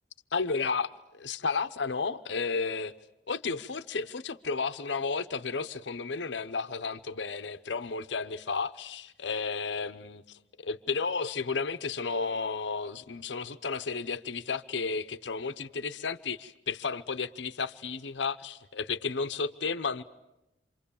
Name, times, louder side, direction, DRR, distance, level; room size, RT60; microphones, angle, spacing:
voice 1, 0.3-2.9 3.3-20.0, left 4 dB, 85° left, 0.9 m, -33 dB
28.0 x 26.5 x 7.2 m
head